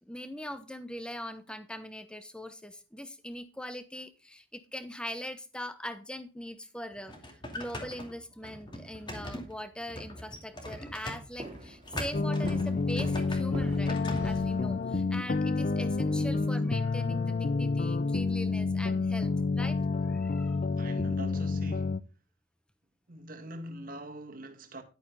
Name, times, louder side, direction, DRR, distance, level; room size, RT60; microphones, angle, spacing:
voice 1, 0.1-14.0 14.2-19.8 20.1-20.6, equal, 5° left, 0.9 m, -41 dB
sound 1, 6.9-14.3, left 1 dB, 25° left, 2.5 m, -42 dB
Walk footsteps, 11.4-14.7, right 1 dB, 30° right, 2.1 m, -43 dB
sound 2, 12.1-22.0, left 3 dB, 40° left, 0.5 m, -29 dB
voice 2, 20.8-22.0 23.1-24.8, right 1 dB, 45° right, 1.7 m, -43 dB
11.0 x 9.0 x 3.8 m
head